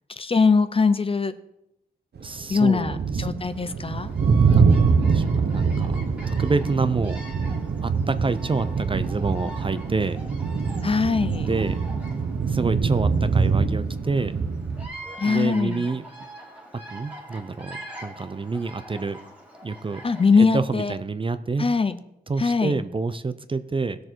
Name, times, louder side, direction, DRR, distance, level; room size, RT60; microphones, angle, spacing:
voice 1, 0.2-1.3 2.5-4.1 10.8-11.5 15.2-15.8 20.0-20.9 21.6-22.0 22.4-22.8, left 4 dB, 30° left, 12 dB, 0.6 m, -21 dB
voice 2, 2.2-3.3 4.3-6.0 6.3-7.2 7.8-10.2 11.4-11.8 12.5-14.4 15.2-16.0 16.9-19.2 19.6-20.0 20.3-21.7 22.3-24.0, right 4 dB, 30° right, 12 dB, 0.5 m, -28 dB
sound 1, 2.2-14.9, right 5 dB, 70° right, 1.0 m, -24 dB
Bird vocalization bird call bird song, 3.4-20.6, right 1 dB, 5° right, 2.2 m, -44 dB
17.5 x 6.5 x 4.5 m, 0.81 s
wide cardioid pair, 120°, 18 cm